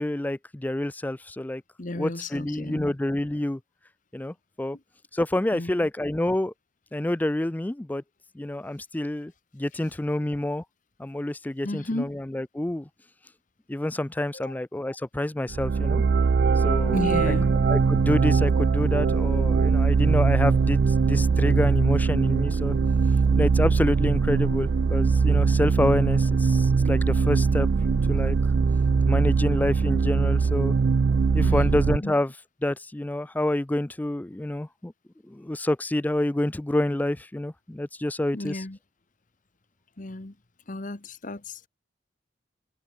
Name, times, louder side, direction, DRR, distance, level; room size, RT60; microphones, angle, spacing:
voice 1, 0.0-1.6 1.9-3.6 4.1-4.8 5.1-6.5 6.9-8.0 8.3-10.6 11.0-12.9 13.7-16.0 16.6-17.0 17.3-17.4 17.7-22.8 23.3-27.7 28.1-28.4 29.1-30.7 31.3-32.3 32.6-34.9 35.3-38.6, left 1 dB, 10° left, 0.4 m, -28 dB
voice 2, 1.8-3.0 5.5-5.9 11.6-12.1 14.3-14.6 16.9-17.6 31.4-32.1 38.3-38.8 40.0-40.3 40.7-41.7, left 1 dB, 45° left, 1.3 m, -33 dB
sound 1, 15.5-32.0, right 5 dB, 60° right, 0.4 m, -21 dB
head